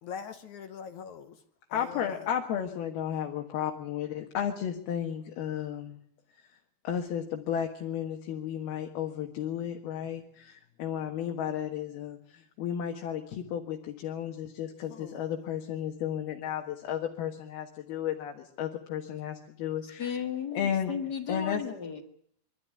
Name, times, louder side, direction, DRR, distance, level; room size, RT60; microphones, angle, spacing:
voice 1, 0.0-1.4 1.7-2.3 14.9-15.3, left 7 dB, 65° left, 8 dB, 2.2 m, -43 dB
voice 2, 1.7-6.0 6.9-20.1 20.6-20.9 21.3-21.6, left 9 dB, 85° left, 2 dB, 3.5 m, -33 dB
voice 3, 19.8-22.0, left 7 dB, 40° left, 7 dB, 1.5 m, -35 dB
24.5 x 13.0 x 9.5 m, 0.65 s
omnidirectional pair, 4.3 m